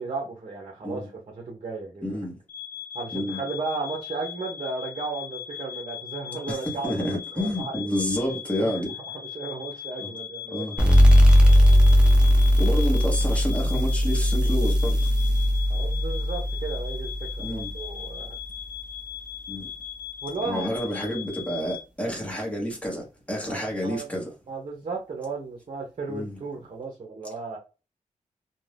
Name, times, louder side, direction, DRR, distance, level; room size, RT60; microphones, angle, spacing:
voice 1, 0.0-2.2 2.9-7.8 8.6-8.7 9.1-10.9 12.2-12.3 15.7-17.1 17.4-18.4 20.2-21.0 23.5-24.1 24.5-27.6, right 3 dB, 45° right, 0.7 m, -35 dB
voice 2, 2.0-2.4 3.1-3.4 6.5-8.9 10.0-10.1 10.5-10.8 12.6-15.1 17.4-17.7 19.5-19.7 20.4-24.3 26.1-26.4, equal, 10° left, 1.0 m, -29 dB
sound 1, 2.5-21.8, left 10 dB, 75° left, 0.8 m, -39 dB
sound 2, 10.8-18.0, equal, 5° right, 0.5 m, -19 dB
2.5 x 2.1 x 3.2 m
wide cardioid pair, 160°, 13 cm